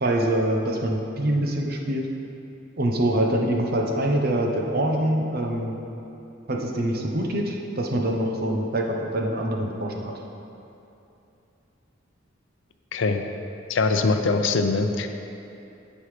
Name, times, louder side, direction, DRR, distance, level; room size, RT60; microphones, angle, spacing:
voice 1, 0.0-2.1 2.8-5.8 6.5-10.1, right 1 dB, 50° right, 1 dB, 0.9 m, -24 dB
voice 2, 12.9-13.2 13.7-15.1, left 3 dB, 70° left, 6 dB, 0.6 m, -22 dB
16.0 x 5.4 x 3.3 m, 2.8 s
head